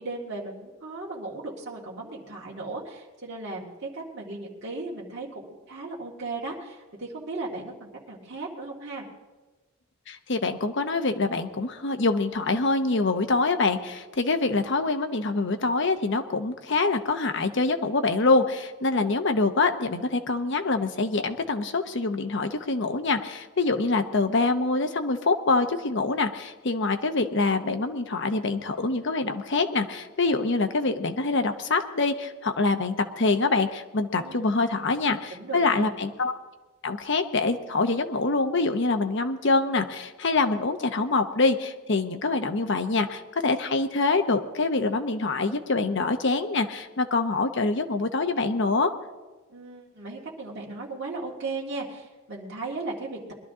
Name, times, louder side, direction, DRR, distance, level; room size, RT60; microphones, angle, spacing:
voice 1, 0.0-9.1 34.2-34.6 35.3-35.9 49.5-53.2, right 3 dB, 50° right, -5 dB, 2.0 m, -36 dB
voice 2, 10.1-36.4 36.8-48.9, left 3 dB, 55° left, 7 dB, 0.8 m, -25 dB
21.0 x 12.0 x 3.7 m, 1.2 s
head